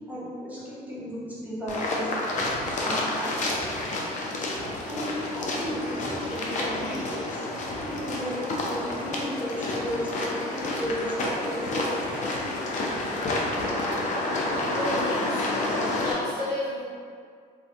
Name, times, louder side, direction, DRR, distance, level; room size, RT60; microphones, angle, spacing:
voice 1, 0.1-2.1 2.8-3.7 4.5-12.4, equal, 10° right, -9 dB, 0.9 m, -34 dB
sound 1, 1.7-16.1, left 2 dB, 45° left, 0.5 m, -29 dB
voice 2, 14.7-16.8, left 1 dB, 70° left, -8 dB, 1.1 m, -32 dB
2.6 x 2.6 x 3.3 m, 2.2 s
cardioid pair, 110°, 17 cm